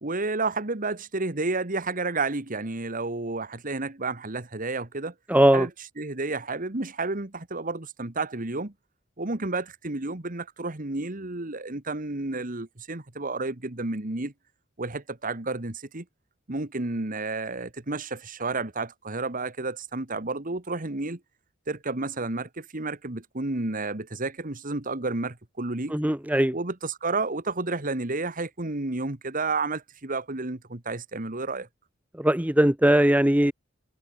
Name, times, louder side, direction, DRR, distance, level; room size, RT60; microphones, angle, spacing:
voice 1, 0.0-5.1 5.5-5.7 6.0-8.7 9.2-14.3 14.8-16.1 16.5-21.2 21.7-26.0 26.5-31.7, right 3 dB, 45° right, 1.9 m, -31 dB
voice 2, 5.3-5.7 25.9-26.5 32.2-33.5, right 1 dB, 10° right, 1.0 m, -20 dB
head